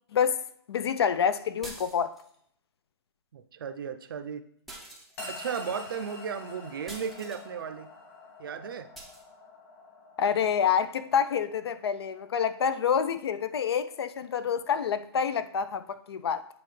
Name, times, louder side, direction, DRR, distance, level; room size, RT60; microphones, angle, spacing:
voice 1, 0.7-2.2 10.2-16.5, left 7 dB, 65° left, 0.5 m, -27 dB
sound 1, 1.6-2.4 4.7-5.5 6.9-7.5 8.9-9.2, right 2 dB, ahead, 0.5 m, -45 dB
voice 2, 3.3-4.4 5.3-7.9 8.4-8.9, right 7 dB, 55° right, 0.5 m, -35 dB
sound 2, 5.2-15.5, left 2 dB, 30° left, 1.7 m, -48 dB
8.6 x 4.3 x 3.2 m
hypercardioid pair, 170°, 14 cm